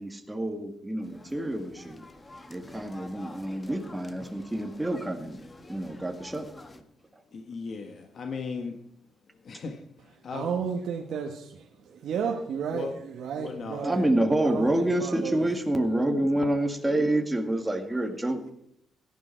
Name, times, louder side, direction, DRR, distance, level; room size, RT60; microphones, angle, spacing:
voice 1, 0.0-2.0 2.5-5.4 5.7-6.5 7.1-7.2 13.8-18.5, right 1 dB, 10° right, 4 dB, 2.0 m, -28 dB
sound 1, 1.0-6.8, left 2 dB, 25° left, 1.5 m, -48 dB
voice 2, 7.3-8.8 9.4-10.5 12.7-12.9 13.4-13.8, left 4 dB, 50° left, 4 dB, 1.5 m, -37 dB
voice 3, 10.3-14.1 14.4-15.5, right 6 dB, 70° right, 2 dB, 1.4 m, -33 dB
17.0 x 12.0 x 4.6 m, 0.72 s
cardioid pair, 90°, 0 cm